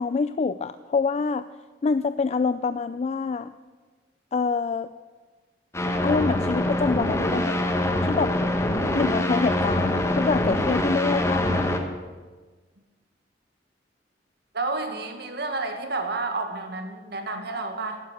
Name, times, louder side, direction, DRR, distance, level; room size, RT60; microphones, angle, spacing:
voice 1, 0.0-1.5 1.8-3.5 4.3-4.9 6.0-7.6 8.0-8.4 9.0-12.0, left 4 dB, 40° left, 13 dB, 0.3 m, -26 dB
sound 1, 5.7-11.8, left 1 dB, 15° left, 1.3 m, -24 dB
voice 2, 14.5-18.0, right 3 dB, 65° right, 6 dB, 1.7 m, -30 dB
12.0 x 10.5 x 8.0 m, 1.4 s
head